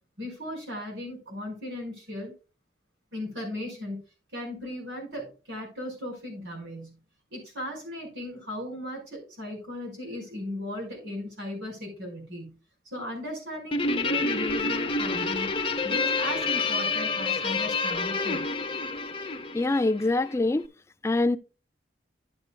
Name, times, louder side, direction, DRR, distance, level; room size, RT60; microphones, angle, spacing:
voice 1, 0.2-2.3 3.1-4.0 4.3-7.0 7.3-12.6 12.9-15.5 15.8-18.4, left 1 dB, 85° right, 5.3 m, -36 dB
Guitar, 13.7-20.4, left 4 dB, 30° left, 0.8 m, -28 dB
voice 2, 19.5-20.6 21.0-21.4, left 2 dB, 15° left, 0.3 m, -24 dB
11.5 x 8.1 x 2.3 m
head